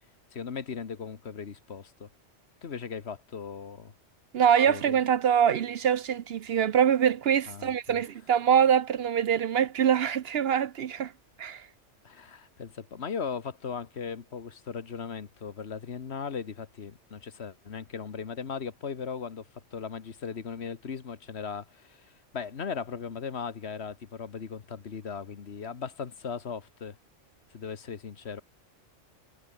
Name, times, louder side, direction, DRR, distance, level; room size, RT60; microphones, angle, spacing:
voice 1, 0.3-2.1 2.6-3.9 4.7-5.0 7.5-8.0 12.0-27.0 27.5-28.4, left 6 dB, 60° left, 1.5 m, -38 dB
voice 2, 4.3-11.1 11.4-11.6, right 8 dB, 60° right, 0.8 m, -24 dB
omnidirectional pair, 1.2 m